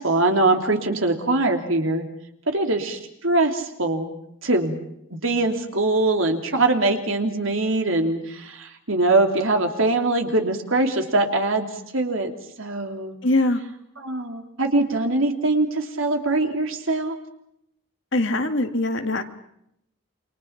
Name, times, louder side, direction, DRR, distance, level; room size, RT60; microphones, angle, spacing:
voice 1, 0.0-2.0 2.5-4.1 4.4-4.8 5.2-11.7 11.9-12.3 12.6-13.1 14.0-17.2, right 2 dB, 75° right, 4 dB, 3.2 m, -22 dB
voice 2, 13.2-13.6 18.1-19.2, left 2 dB, 60° left, 7 dB, 2.2 m, -22 dB
29.0 x 24.5 x 5.9 m, 0.76 s
head